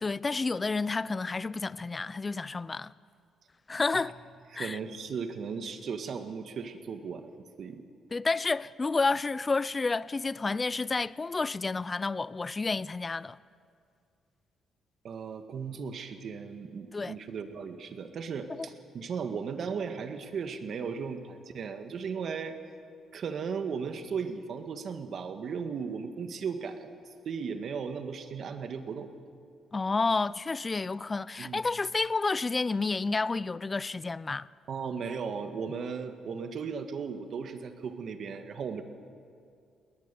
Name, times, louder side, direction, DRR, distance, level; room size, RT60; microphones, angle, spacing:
voice 1, 0.0-2.9 3.7-4.1 4.6-4.8 8.1-13.4 16.9-17.2 18.5-18.7 29.7-34.5, left 3 dB, 25° left, 0.4 m, -30 dB
voice 2, 4.5-7.3 7.6-7.8 15.0-22.6 23.1-26.9 27.3-29.1 31.4-31.6 34.7-38.8, right 6 dB, 60° right, 1.7 m, -36 dB
21.0 x 19.0 x 7.0 m
cardioid pair, 90°, 0 cm